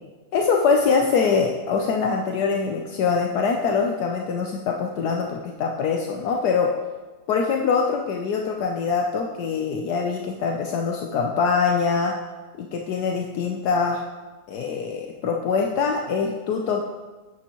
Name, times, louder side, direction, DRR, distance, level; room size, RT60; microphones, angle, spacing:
voice 1, 0.3-6.8 7.3-12.2 12.6-14.0 14.5-16.8, left 5 dB, 75° left, 1 dB, 1.2 m, -23 dB
9.0 x 8.5 x 3.0 m, 1.2 s
omnidirectional pair, 1.8 m